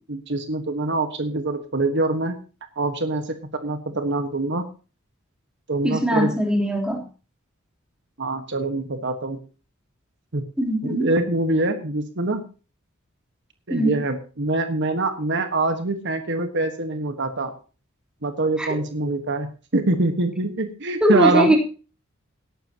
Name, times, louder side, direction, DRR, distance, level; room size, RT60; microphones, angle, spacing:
voice 1, 0.0-2.4 2.8-4.6 5.7-6.4 8.2-9.4 10.3-10.4 10.8-12.4 13.7-17.5 18.2-21.5, right 2 dB, 60° right, 7 dB, 1.5 m, -24 dB
voice 2, 5.8-7.0 10.6-11.1 13.7-14.0 18.6-18.7 21.0-21.6, equal, 5° right, 1 dB, 3.5 m, -21 dB
18.5 x 11.5 x 2.9 m, 0.35 s
head